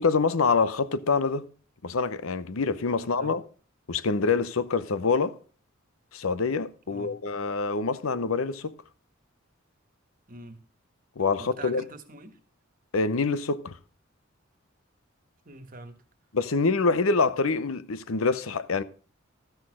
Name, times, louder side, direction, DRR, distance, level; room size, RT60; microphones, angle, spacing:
voice 1, 0.0-1.5 1.8-3.4 3.9-5.4 6.1-8.7 11.2-11.8 12.9-13.7 16.3-18.8, left 4 dB, 90° left, 0.8 m, -26 dB
voice 2, 3.0-3.3 6.9-7.1 10.3-10.6 11.4-12.4 15.4-16.0, right 2 dB, 40° right, 1.5 m, -44 dB
13.5 x 6.4 x 6.2 m
head